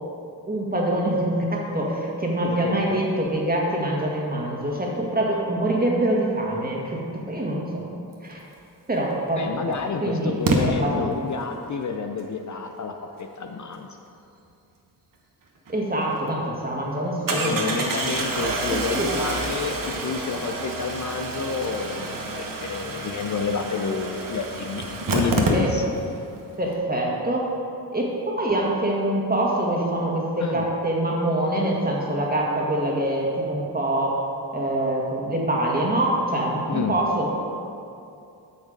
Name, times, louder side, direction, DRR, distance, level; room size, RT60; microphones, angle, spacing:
voice 1, 0.5-7.8 8.2-8.4 8.9-9.7 10.0-11.4 15.7-17.9 18.7-19.1 25.5-25.7 26.6-27.4 27.9-34.2 34.5-37.4, right 1 dB, 20° right, -3 dB, 1.9 m, -25 dB
voice 2, 2.4-3.0 9.4-13.9 17.3-24.8 25.1-25.8 30.4-30.6 36.7-37.0, left 5 dB, 45° left, 4 dB, 0.6 m, -29 dB
Engine starting, 9.0-9.1 10.5-10.6 15.7-15.8 16.1-16.2 17.3-26.1 26.4-26.5 26.7-26.8, right 2 dB, 50° right, 1.3 m, -28 dB
8.7 x 6.3 x 5.2 m, 2.6 s
cardioid pair, 75°, 41 cm